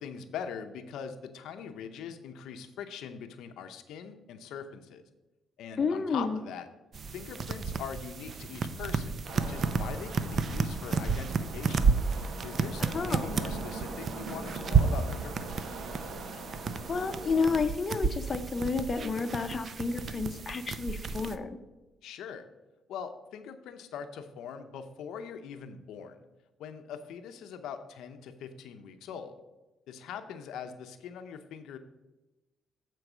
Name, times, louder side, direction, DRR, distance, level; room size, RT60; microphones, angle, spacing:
voice 1, 0.0-5.0 5.6-6.7 7.1-11.8 12.4-15.7 22.0-22.4 22.9-26.2 26.6-29.3 29.9-31.8, left 7 dB, 85° left, 8 dB, 0.6 m, -42 dB
voice 2, 5.8-6.4 12.8-13.4 16.5-16.6 16.9-21.6, left 4 dB, 40° left, 7 dB, 0.7 m, -31 dB
sound 1, 6.9-21.4, right 5 dB, 50° right, 0.5 m, -31 dB
sound 2, 9.2-17.7, right 3 dB, 70° right, 1.2 m, -41 dB
7.9 x 4.6 x 6.0 m, 1.1 s
cardioid pair, 90°, 0 cm